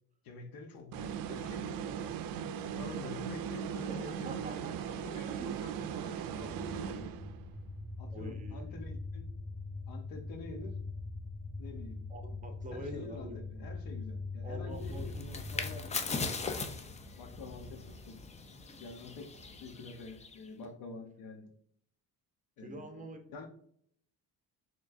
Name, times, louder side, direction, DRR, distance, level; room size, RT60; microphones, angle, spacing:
voice 1, 0.2-7.2 8.0-9.3 9.9-10.7 11.6-12.0 12.7-16.6 17.2-18.2 18.8-19.3 19.6-21.5 22.6-23.0 23.3-23.5, left 3 dB, 70° left, 5 dB, 0.9 m, -48 dB
sound 1, 0.9-7.5, right 8 dB, 65° right, 0.5 m, -38 dB
voice 2, 3.9-4.9 5.3-5.6 8.1-8.8 12.1-13.4 14.4-15.4 22.6-23.2, right 1 dB, 20° right, 5 dB, 0.8 m, -45 dB
sound 2, 5.9-15.7, left 3 dB, 5° left, 1.4 m, -42 dB
sound 3, 14.7-20.5, left 4 dB, 20° left, 0.4 m, -40 dB
4.5 x 3.1 x 2.6 m, 0.65 s
cardioid pair, 120°, 36 cm